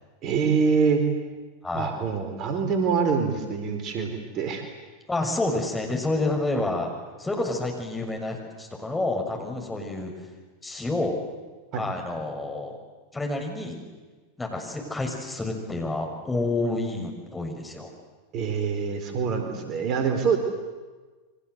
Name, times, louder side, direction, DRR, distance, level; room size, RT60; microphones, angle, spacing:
voice 1, 0.2-1.0 1.7-4.6 11.7-11.9 18.3-20.4, right 5 dB, 40° right, 6 dB, 4.2 m, -25 dB
voice 2, 1.6-1.9 5.1-6.9 7.2-10.1 10.6-11.2 11.8-12.8 13.1-13.8 14.4-17.9, left 2 dB, 10° left, 2 dB, 6.6 m, -29 dB
29.5 x 24.5 x 8.2 m, 1.3 s
figure-of-eight pair, 90°, 0 cm